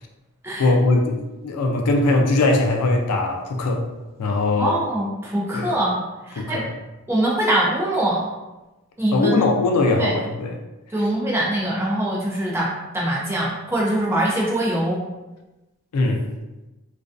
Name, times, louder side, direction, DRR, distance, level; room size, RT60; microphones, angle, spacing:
voice 1, 0.6-1.2 1.4-3.9 4.2-4.8 5.5-5.7 6.4-6.7 9.1-10.6 15.9-16.2, left 2 dB, 90° left, 2 dB, 0.4 m, -20 dB
voice 2, 4.6-6.0 6.3-6.6 7.1-8.2 9.0-9.4 10.0-10.1 10.9-15.0, right 1 dB, 10° right, -4 dB, 0.4 m, -23 dB
2.4 x 2.2 x 2.4 m, 1.1 s
head